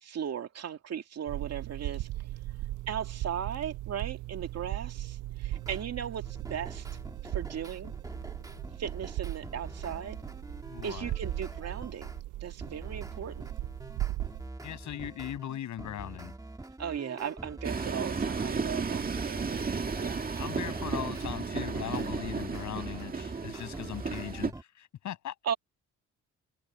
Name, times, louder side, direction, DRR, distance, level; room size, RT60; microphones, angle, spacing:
voice 1, 0.0-2.1 2.9-6.8 7.3-7.9 8.8-10.2 10.8-12.1 12.4-13.6 16.8-19.6 20.0-20.2 21.8-21.9 25.4-25.5, right 8 dB, 55° right, 2.3 m, -37 dB
sound 1, 1.3-14.5, right 15 dB, 80° right, 0.7 m, -38 dB
sound 2, 5.5-5.9 6.2-12.2 12.6-18.6 19.0-24.6, right 2 dB, 10° right, 2.1 m, -45 dB
voice 2, 10.7-11.1 14.6-16.3 20.4-25.3, left 11 dB, 70° left, 7.1 m, -39 dB
Train, 17.6-24.5, right 5 dB, 30° right, 1.9 m, -33 dB
cardioid pair, 90°, 30 cm